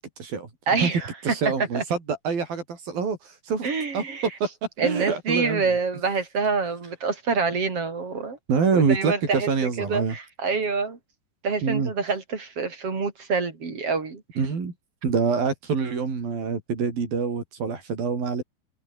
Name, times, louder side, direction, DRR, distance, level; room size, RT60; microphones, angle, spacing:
voice 1, 0.0-0.5 0.8-0.9 1.2-3.7 3.9-4.0 4.4-4.5 4.8-5.7 8.5-10.2 11.6-11.9 14.4-14.7 15.0-18.4, right 5 dB, 90° right, 7.1 m, -26 dB
voice 2, 0.7-1.4 1.7-1.8 3.6-4.3 4.8-8.4 8.7-9.5 9.8-11.0 11.4-14.2, right 4 dB, 40° right, 4.4 m, -26 dB
omnidirectional pair, 4.0 m